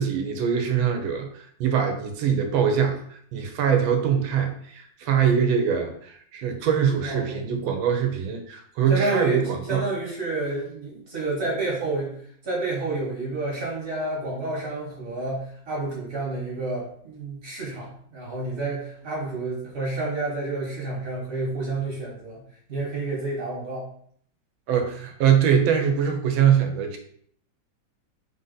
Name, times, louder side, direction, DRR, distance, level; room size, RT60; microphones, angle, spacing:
voice 1, 0.0-9.8 24.7-27.0, right 8 dB, 80° right, 4 dB, 1.4 m, -23 dB
voice 2, 7.0-7.5 8.9-22.4 22.7-23.9, right 2 dB, 45° right, -5 dB, 1.4 m, -29 dB
3.6 x 2.6 x 3.8 m, 0.63 s
omnidirectional pair, 2.2 m